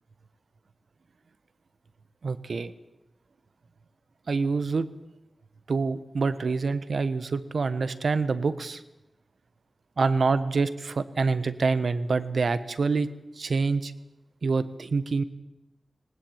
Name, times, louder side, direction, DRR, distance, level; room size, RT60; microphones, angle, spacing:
voice 1, 2.2-2.7 4.3-4.9 5.7-8.8 10.0-13.1 13.4-13.9 14.4-15.2, right 4 dB, 75° right, 14 dB, 1.2 m, -26 dB
19.5 x 19.0 x 8.8 m, 0.93 s
wide cardioid pair, 85°, 0 cm